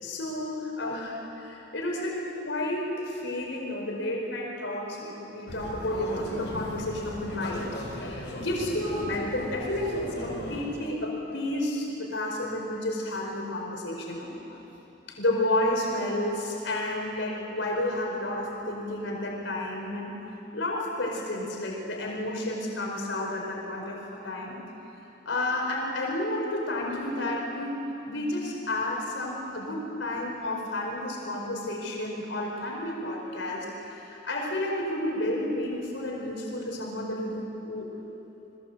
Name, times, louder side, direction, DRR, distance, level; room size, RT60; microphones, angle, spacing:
voice 1, 0.0-14.6 15.1-20.1 20.5-24.6 25.2-37.9, left 1 dB, 90° left, -1 dB, 4.8 m, -31 dB
sound 1, 5.5-10.6, left 1 dB, 65° left, 5.3 m, -37 dB
29.0 x 20.5 x 8.1 m, 3.0 s
head